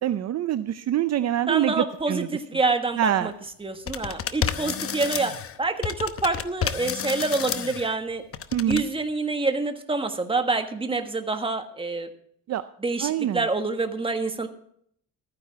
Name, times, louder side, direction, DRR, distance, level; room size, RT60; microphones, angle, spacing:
voice 1, 0.0-2.3 3.0-3.3 8.5-8.8 12.5-12.6 13.0-13.4, right 11 dB, 55° right, 12 dB, 0.6 m, -25 dB
voice 2, 1.5-3.3 3.6-5.3 5.6-8.2 8.7-12.1 12.8-14.5, right 3 dB, 15° right, 6 dB, 1.5 m, -27 dB
sound 1, 3.9-5.6 5.8-7.9 8.3-8.8, left 8 dB, 45° left, 0.9 m, -30 dB
14.0 x 9.8 x 4.8 m, 0.65 s
cardioid pair, 120°, 32 cm